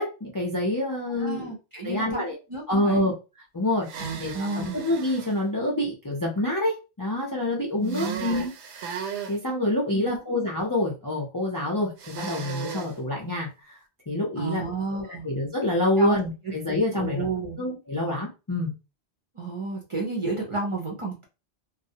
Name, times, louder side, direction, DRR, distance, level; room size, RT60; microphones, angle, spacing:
voice 1, 0.0-1.5 1.8-2.4 2.7-3.1 3.5-8.5 9.3-13.8 14.1-14.7 15.0-17.3 17.6-18.7, left 1 dB, 30° left, -2 dB, 0.4 m, -27 dB
voice 2, 0.9-2.2 2.5-3.1 4.0-4.8 7.8-8.2 9.9-10.3 14.4-15.3 16.0-16.2 16.9-17.6 19.3-21.2, right 3 dB, 35° right, -1 dB, 0.5 m, -31 dB
sound 1, 3.8-5.3 7.9-9.4 12.0-12.9, right 6 dB, 80° right, 0.9 m, -36 dB
2.3 x 2.0 x 2.7 m, 0.29 s
omnidirectional pair, 1.1 m